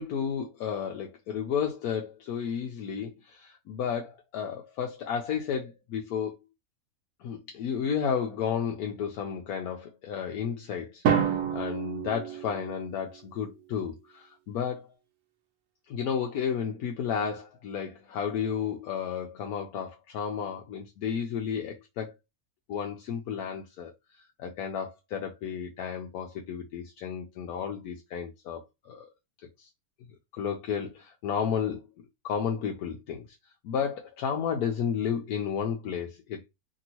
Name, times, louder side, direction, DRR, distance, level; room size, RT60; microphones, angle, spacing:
voice 1, 0.0-6.3 7.2-11.0 11.5-14.9 15.9-22.1 22.7-23.9 24.4-29.1 29.6-29.7 30.4-31.8 32.2-33.3 33.6-36.4, left 7 dB, 85° left, 1.1 m, -32 dB
Drum, 11.0-13.1, right 8 dB, 85° right, 1.1 m, -28 dB
2.9 x 2.7 x 2.8 m
omnidirectional pair, 1.6 m